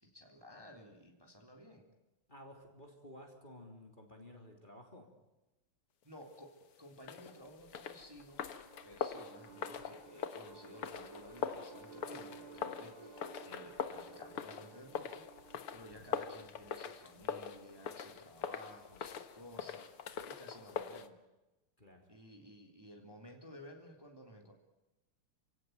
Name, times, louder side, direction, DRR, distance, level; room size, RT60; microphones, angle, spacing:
voice 1, 0.0-1.9 6.0-8.5 8.8-15.3 15.7-21.2 22.1-24.5, equal, 10° right, 2 dB, 3.5 m, -55 dB
voice 2, 2.3-5.1 15.9-16.1 21.8-22.1, left 1 dB, 20° left, 2 dB, 3.5 m, -54 dB
sound 1, 7.0-21.1, left 8 dB, 80° left, 2.3 m, -43 dB
sound 2, 8.0-17.0, right 4 dB, 45° right, 2.9 m, -56 dB
29.0 x 17.5 x 9.4 m, 1.0 s
omnidirectional pair, 2.4 m